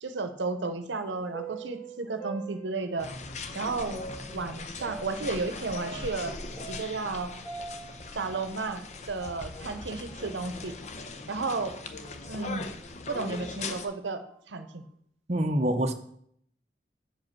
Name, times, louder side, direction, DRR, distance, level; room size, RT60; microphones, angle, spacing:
voice 1, 0.0-3.1 3.5-4.0 4.3-6.4 6.7-7.3 8.1-10.8 11.3-11.8 12.3-12.7 13.1-14.8, right 3 dB, 90° right, 9 dB, 0.8 m, -33 dB
sound 1, 1.0-3.2 3.9-7.2 7.4-9.8 10.1-10.2 10.9-11.0 11.8-12.0 12.7-12.8 13.6-13.9, right 3 dB, 25° left, 1.9 m, -44 dB
sound 2, 3.0-13.9, left 3 dB, 40° left, 0.7 m, -40 dB
voice 2, 15.3-15.9, right 1 dB, 35° right, 5 dB, 0.6 m, -25 dB
8.4 x 5.1 x 5.9 m, 0.67 s
head